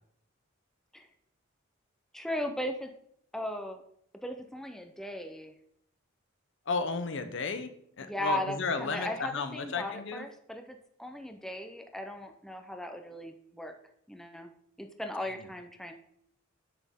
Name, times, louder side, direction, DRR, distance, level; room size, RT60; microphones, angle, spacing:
voice 1, 2.1-2.9 3.3-3.8 4.2-5.5 8.0-13.7 14.1-14.5 14.8-15.9, left 1 dB, ahead, 5 dB, 0.6 m, -37 dB
voice 2, 6.7-10.3, left 4 dB, 60° left, 9 dB, 0.8 m, -33 dB
9.0 x 6.3 x 3.6 m, 0.70 s
head